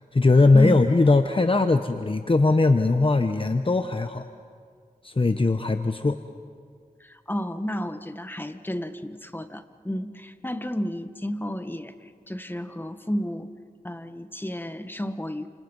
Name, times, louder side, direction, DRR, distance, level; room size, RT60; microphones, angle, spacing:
voice 1, 0.0-4.3 5.0-6.2, left 3 dB, 35° left, 7 dB, 1.0 m, -20 dB
voice 2, 7.0-13.5 13.8-15.5, equal, 15° left, 9 dB, 1.5 m, -32 dB
29.5 x 27.5 x 5.5 m, 2.1 s
cardioid pair, 45°, 15 cm